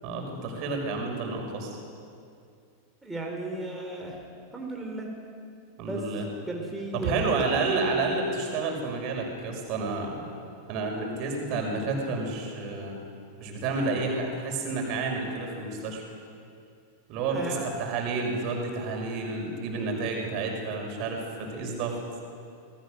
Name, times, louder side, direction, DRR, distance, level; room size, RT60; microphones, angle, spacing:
voice 1, 0.0-1.8 5.8-6.3 6.9-10.2 10.7-13.0 13.4-16.0 17.1-22.2, right 3 dB, 40° right, 2 dB, 5.8 m, -30 dB
voice 2, 3.0-4.2 4.5-5.1 5.8-6.0 6.5-7.5 17.3-17.6, right 2 dB, 5° right, -1 dB, 3.8 m, -34 dB
27.5 x 21.0 x 6.6 m, 2.4 s
figure-of-eight pair, 90°, 0 cm